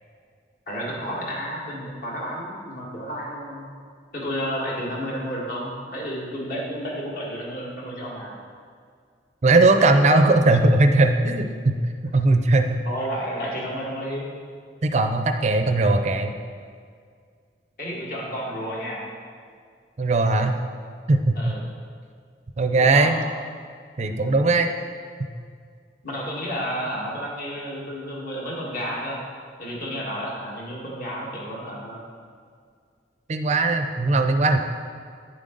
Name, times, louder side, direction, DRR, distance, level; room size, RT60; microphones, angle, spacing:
voice 1, 0.7-3.7 4.1-8.3 12.9-14.3 17.8-19.0 21.4-21.6 22.8-23.1 24.1-24.3 26.0-29.2 29.6-32.0, equal, 50° left, -4 dB, 1.9 m, -31 dB
voice 2, 9.4-11.8 12.0-12.8 14.8-16.3 20.0-20.6 21.1-21.5 22.6-23.2 24.0-24.7 33.3-34.6, right 2 dB, 40° right, 6 dB, 0.5 m, -19 dB
9.7 x 7.4 x 3.9 m, 2.1 s
head